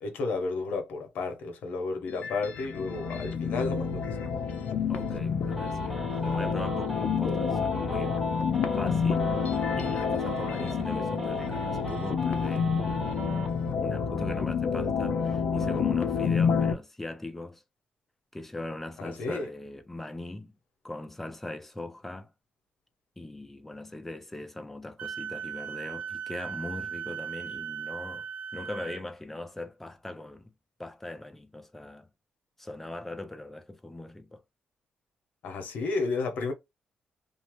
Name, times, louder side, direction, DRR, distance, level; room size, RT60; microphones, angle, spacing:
voice 1, 0.0-4.2 7.3-7.4 19.0-19.5 35.4-36.5, left 3 dB, 75° left, 0.9 m, -32 dB
sound 1, 2.1-16.7, left 6 dB, 60° left, 0.5 m, -29 dB
voice 2, 4.9-8.2 8.5-13.4 13.8-17.6 18.3-20.5 20.8-22.3 23.2-28.3 28.5-30.5 30.8-32.1 32.6-34.4, left 2 dB, 10° left, 0.4 m, -40 dB
sound 2, 5.5-13.5, equal, 10° right, 1.0 m, -38 dB
Wind instrument woodwind instrument, 25.0-29.0, right 7 dB, 55° right, 0.3 m, -37 dB
2.7 x 2.0 x 3.0 m
cardioid pair, 170°, 3 cm